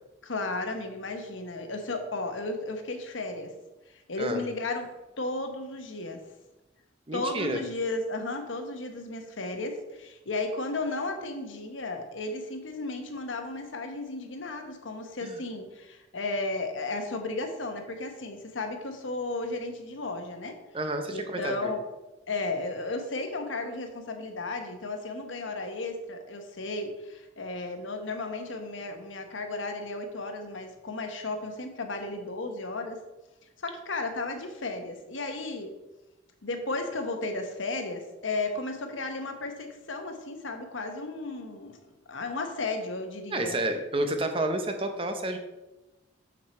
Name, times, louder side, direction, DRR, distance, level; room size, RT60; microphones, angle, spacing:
voice 1, 0.2-3.5 3.9-4.9 5.2-6.2 7.1-20.6 21.1-21.8 22.3-33.0 33.6-35.7 36.4-41.8 42.1-43.6, left 2 dB, 80° left, 5 dB, 1.1 m, -34 dB
voice 2, 7.1-7.6 15.2-15.4 20.7-21.7 43.3-45.4, right 1 dB, 30° right, 6 dB, 0.7 m, -30 dB
6.6 x 6.0 x 4.4 m, 1.0 s
head